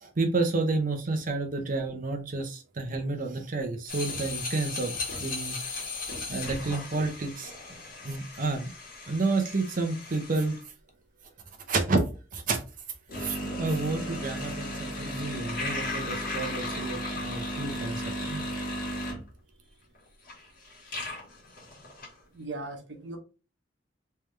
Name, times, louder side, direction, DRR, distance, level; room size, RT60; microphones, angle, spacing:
voice 1, 0.0-5.6 6.3-7.5 8.0-8.7 9.1-10.6 11.7-12.0 12.3-12.6 13.2-18.5, right 3 dB, 50° right, 5 dB, 0.8 m, -30 dB
sound 1, 3.9-10.6 13.1-19.3 19.9-20.0 20.3-22.1, left 1 dB, 50° left, 1.6 m, -35 dB
voice 2, 22.3-23.2, right 2 dB, 85° right, 4 dB, 1.0 m, -38 dB
3.4 x 3.3 x 3.2 m, 0.33 s
head